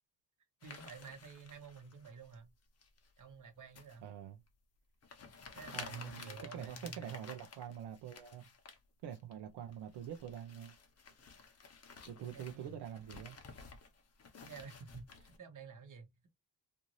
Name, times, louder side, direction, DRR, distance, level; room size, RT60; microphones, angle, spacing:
sound 1, 0.6-2.4 2.8-3.2 3.7-4.0 4.5-4.6 5.0-8.8 9.1-9.3 9.7-15.4, left 5 dB, 35° left, 0.8 m, -53 dB
voice 1, 0.6-2.5 3.2-4.1 5.5-7.3 12.2-12.7 14.4-16.3, right 5 dB, 45° right, 1.0 m, -51 dB
voice 2, 4.0-4.4 5.7-8.5 9.0-10.7 12.1-13.4, right 9 dB, 70° right, 0.6 m, -45 dB
2.6 x 2.6 x 3.0 m
cardioid pair, 100°, 42 cm